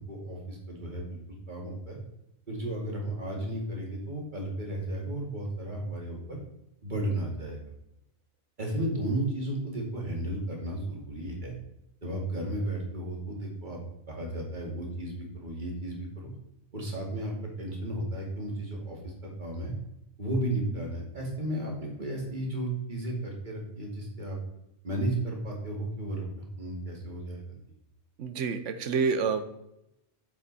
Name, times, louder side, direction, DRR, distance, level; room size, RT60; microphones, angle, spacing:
voice 1, 0.1-1.2 1.5-2.0 2.5-6.4 6.8-7.6 8.6-11.5 12.0-13.8 14.1-16.3 16.7-19.7 20.2-24.4 24.8-26.2 26.6-27.6, right 1 dB, 35° right, -1 dB, 2.5 m, -34 dB
voice 2, 28.2-29.4, right 5 dB, 65° right, 10 dB, 1.1 m, -28 dB
7.7 x 7.3 x 4.2 m, 0.83 s
omnidirectional pair, 1.4 m